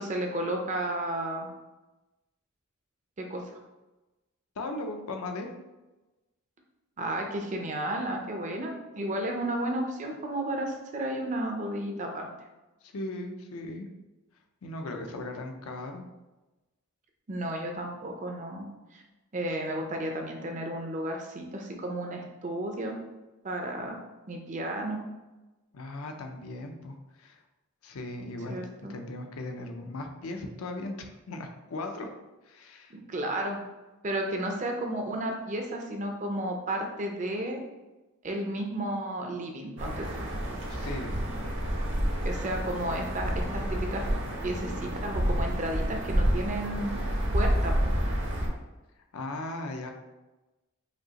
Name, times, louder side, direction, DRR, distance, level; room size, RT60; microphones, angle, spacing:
voice 1, 0.0-1.5 3.2-3.5 7.0-12.3 17.3-18.6 18.9-19.0 19.3-23.0 23.4-24.0 24.3-25.0 28.5-28.9 32.9-33.6 34.0-37.6 38.2-40.1 42.2-44.1 44.4-46.9 47.3-47.9, right 1 dB, 35° right, 2 dB, 0.5 m, -33 dB
voice 2, 4.6-5.6 12.8-13.9 14.6-16.0 25.7-27.4 27.8-28.6 28.9-32.1 32.4-32.9 40.7-41.2 49.1-49.9, left 2 dB, 75° left, 4 dB, 0.5 m, -37 dB
sound 1, 39.8-48.5, equal, 55° right, 0.8 m, -29 dB
5.2 x 2.7 x 2.8 m, 1.1 s
head